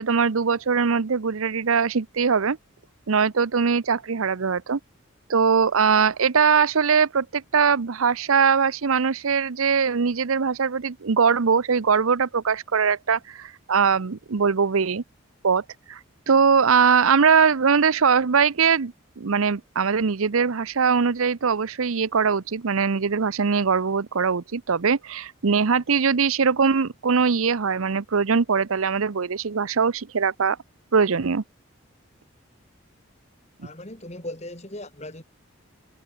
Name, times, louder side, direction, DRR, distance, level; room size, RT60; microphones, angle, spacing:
voice 1, 0.0-2.6 3.1-4.8 5.3-15.0 15.4-16.0 16.3-30.6 30.9-31.4, right 6 dB, 85° right, 0.7 m, -21 dB
voice 2, 33.6-35.2, left 1 dB, 30° left, 3.0 m, -38 dB
head